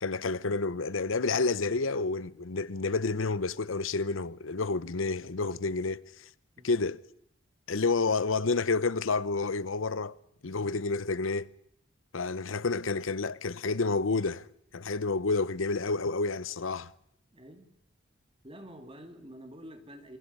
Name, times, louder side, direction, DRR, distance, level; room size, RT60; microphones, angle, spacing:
voice 1, 0.0-6.2 6.6-7.0 7.7-10.2 10.4-11.5 12.1-14.5 14.7-16.9, left 3 dB, 80° left, 0.8 m, -29 dB
voice 2, 17.3-17.7 18.4-20.2, equal, 25° right, 2.4 m, -48 dB
28.0 x 23.5 x 5.5 m
head